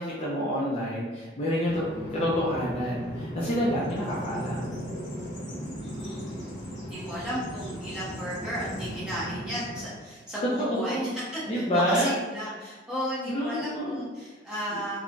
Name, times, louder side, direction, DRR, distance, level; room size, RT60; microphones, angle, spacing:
voice 1, 0.0-1.8 2.1-4.7 10.6-11.1 11.5-12.1 13.3-14.0, equal, 30° left, -7 dB, 0.4 m, -28 dB
Bird vocalization bird call bird song, 1.7-10.0, equal, 80° left, 0.7 m, -37 dB
voice 2, 4.0-4.5 5.8-6.5 6.9-15.0, equal, 5° right, -9 dB, 0.8 m, -35 dB
3.1 x 2.1 x 2.5 m, 1.3 s
head